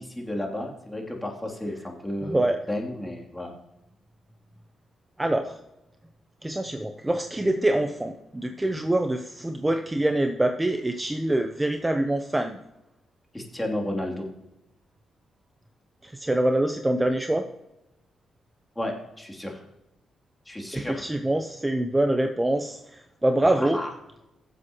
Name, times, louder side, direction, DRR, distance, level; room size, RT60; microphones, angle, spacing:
voice 1, 0.0-3.5 13.3-14.3 18.7-19.6 20.4-21.1 23.6-23.9, left 1 dB, 15° left, 0 dB, 3.1 m, -32 dB
voice 2, 2.2-2.6 5.2-5.6 6.4-12.5 16.0-17.4 20.7-23.8, right 1 dB, 15° right, 6 dB, 0.9 m, -25 dB
16.0 x 7.7 x 3.1 m, 0.92 s
supercardioid pair, 50°, 0 cm